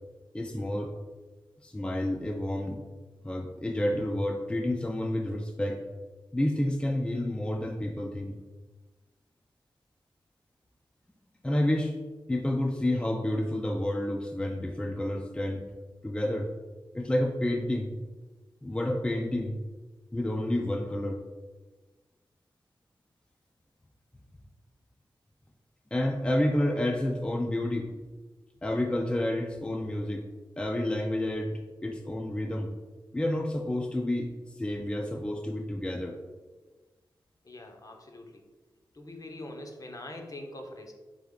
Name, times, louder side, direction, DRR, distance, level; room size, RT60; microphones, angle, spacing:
voice 1, 0.3-0.9 1.6-2.8 3.2-5.8 6.3-8.4 11.4-11.9 12.3-15.6 16.0-16.5 16.9-17.9 18.6-19.6 20.1-21.2 25.9-27.9 28.6-30.3 30.6-32.7 33.1-34.3 34.6-36.2, left 1 dB, 10° left, 2 dB, 0.4 m, -29 dB
voice 2, 37.4-38.4 38.9-40.9, left 1 dB, 40° left, 3 dB, 0.7 m, -43 dB
3.5 x 3.4 x 3.7 m, 1.2 s
cardioid pair, 60°, 9 cm